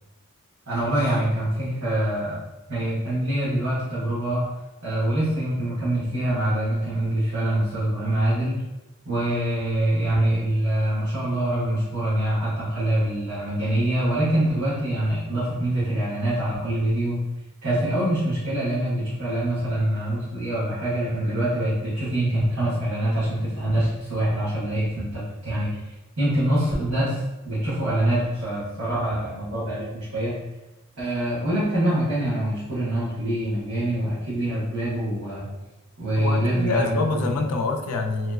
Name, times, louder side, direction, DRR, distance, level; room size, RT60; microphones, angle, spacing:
voice 1, 0.7-2.4 2.7-4.5 4.8-8.6 9.0-17.2 17.6-30.4 31.0-35.5 36.0-37.2, right 1 dB, 80° right, -11 dB, 1.1 m, -25 dB
voice 2, 36.2-38.3, left 3 dB, 85° left, 4 dB, 0.4 m, -26 dB
2.9 x 2.9 x 2.3 m, 1.0 s
head